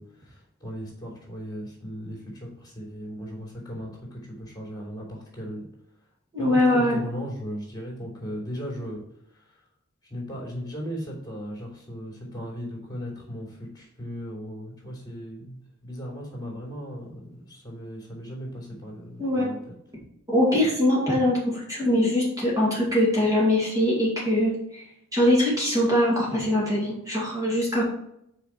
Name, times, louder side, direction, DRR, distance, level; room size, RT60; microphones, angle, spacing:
voice 1, 0.0-5.6 6.4-9.0 9.3-9.6 10.1-19.7, equal, 20° left, -3 dB, 3.2 m, -37 dB
voice 2, 6.3-7.0 19.2-19.5 20.3-24.8 25.1-27.8, left 1 dB, 15° right, -5 dB, 2.2 m, -22 dB
8.4 x 5.0 x 4.4 m, 0.76 s
head